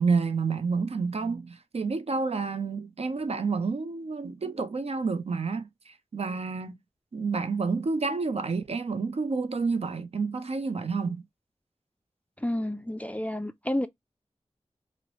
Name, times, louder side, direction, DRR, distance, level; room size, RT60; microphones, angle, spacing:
voice 1, 0.0-6.8 7.1-11.2, right 4 dB, 60° right, 0.5 m, -29 dB
voice 2, 12.4-13.9, left 1 dB, 10° left, 0.3 m, -30 dB
2.8 x 2.0 x 2.9 m
cardioid pair, 45°, 12 cm